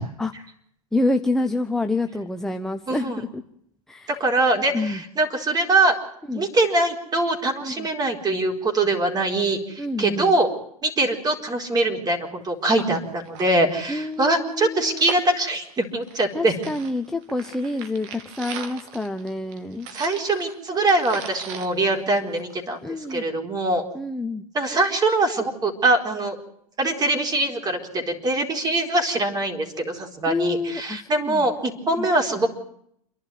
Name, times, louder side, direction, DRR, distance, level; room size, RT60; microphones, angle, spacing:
voice 1, 0.9-3.4 3.9-4.1 4.7-5.0 6.3-6.5 7.6-7.9 9.8-10.3 12.8-12.9 13.9-15.0 16.3-19.9 22.8-23.3 23.9-24.4 30.3-31.4 32.0-32.1, left 2 dB, ahead, 5 dB, 1.0 m, -27 dB
voice 2, 2.9-3.2 4.1-5.9 6.3-10.5 10.8-16.5 19.9-23.8 24.5-26.4 26.8-32.5, right 2 dB, 20° right, 4 dB, 4.3 m, -23 dB
sound 1, 12.5-12.6 12.8-12.9 13.2-16.4 16.6-22.7 23.1-23.2, right 7 dB, 55° right, 2.9 m, -39 dB
28.0 x 11.5 x 9.3 m, 0.70 s
hypercardioid pair, 120°, 18 cm